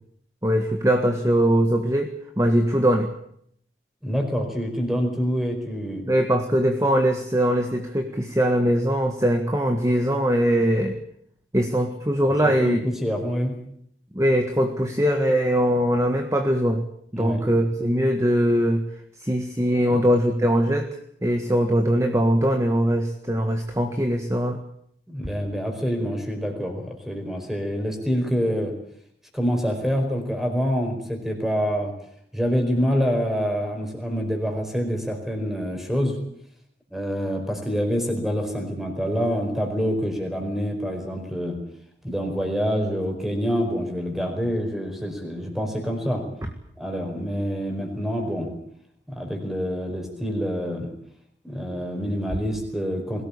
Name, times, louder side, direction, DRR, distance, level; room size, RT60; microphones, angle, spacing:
voice 1, 0.4-2.1 2.4-3.1 6.0-11.0 11.5-12.8 14.1-16.8 17.1-18.8 19.2-20.9 21.2-24.6, equal, 15° right, 5 dB, 1.6 m, -21 dB
voice 2, 4.0-6.0 12.4-13.5 17.2-17.4 19.9-20.0 25.1-28.7 29.3-31.9 32.3-36.2 36.9-41.6 42.0-46.2 46.8-48.5 49.1-50.9 51.4-53.2, equal, ahead, 4 dB, 4.8 m, -26 dB
22.5 x 18.0 x 8.6 m, 0.69 s
head